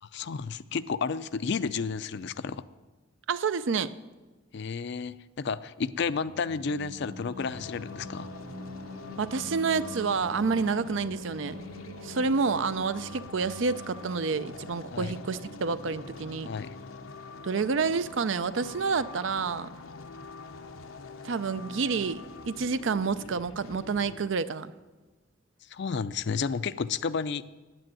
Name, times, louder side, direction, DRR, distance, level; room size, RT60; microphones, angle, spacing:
voice 1, 0.0-2.6 4.5-8.3 14.9-15.1 16.4-16.7 25.7-27.4, left 5 dB, 55° left, 14 dB, 0.4 m, -32 dB
voice 2, 3.3-3.9 9.2-11.6 12.0-16.5 17.4-19.7 21.2-24.7, right 5 dB, 65° right, 15 dB, 0.5 m, -29 dB
Singing, 6.0-17.1, left 1 dB, 45° right, 0.9 m, -45 dB
sound 1, 7.4-24.3, left 3 dB, 85° left, 0.8 m, -45 dB
9.1 x 8.6 x 9.1 m, 1.2 s
head